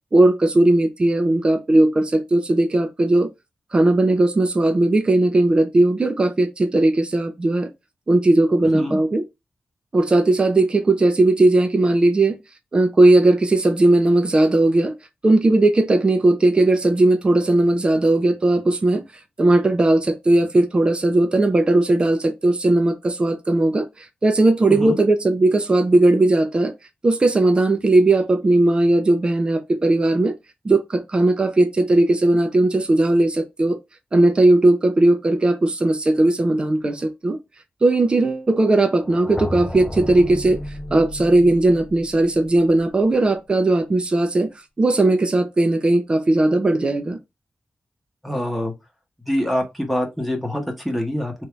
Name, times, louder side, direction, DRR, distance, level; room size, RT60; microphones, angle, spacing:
voice 1, 0.1-3.3 3.7-7.7 8.1-9.2 9.9-12.4 12.7-14.9 15.2-19.0 19.4-23.9 24.2-26.7 27.0-30.3 30.6-33.8 34.1-37.4 37.8-40.6 40.9-47.2, right 2 dB, 30° right, 0.7 m, -17 dB
sound 1, 39.0-43.0, left 1 dB, 20° left, 0.5 m, -33 dB
voice 2, 48.2-48.7 49.3-51.4, equal, ahead, 1.1 m, -25 dB
3.5 x 2.7 x 4.5 m
wide cardioid pair, 150°, 3 cm